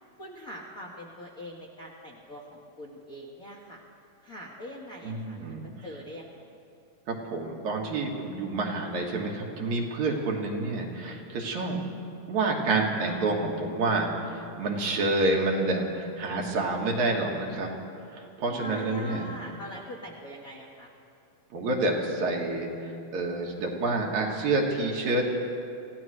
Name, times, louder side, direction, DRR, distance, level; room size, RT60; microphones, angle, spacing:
voice 1, 0.2-3.8 4.2-5.5 5.8-6.5 18.5-20.9, left 1 dB, 55° left, -3 dB, 0.9 m, -42 dB
voice 2, 5.0-5.7 7.1-11.8 12.3-17.7 18.4-19.3 21.5-22.7 23.1-25.3, right 2 dB, 75° right, 0 dB, 2.9 m, -28 dB
27.5 x 15.5 x 3.2 m, 2.7 s
omnidirectional pair, 3.4 m